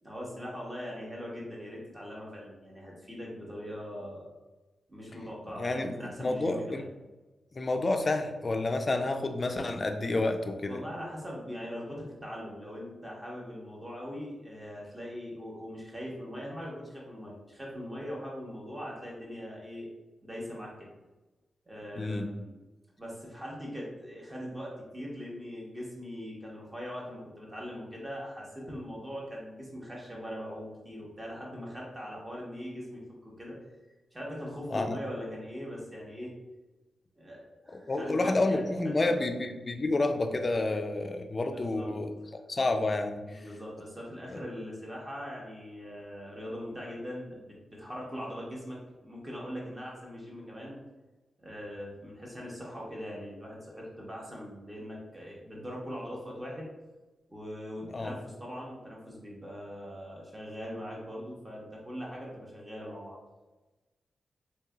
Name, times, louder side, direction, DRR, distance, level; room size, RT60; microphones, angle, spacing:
voice 1, 0.0-4.3 4.9-6.9 10.7-19.9 20.2-20.9 21.7-22.5 23.0-33.6 34.1-36.3 37.2-38.6 39.0-39.1 41.2-41.9 43.3-50.8 51.4-56.7 57.3-63.2, equal, 20° right, -4 dB, 1.1 m, -41 dB
voice 2, 5.6-5.9 6.2-6.8 7.5-10.8 22.0-22.3 34.7-35.0 37.7-43.2 44.3-44.4 57.9-58.1, left 2 dB, 40° left, 6 dB, 0.3 m, -29 dB
3.1 x 2.8 x 2.3 m, 1.1 s
cardioid pair, 65°, 0 cm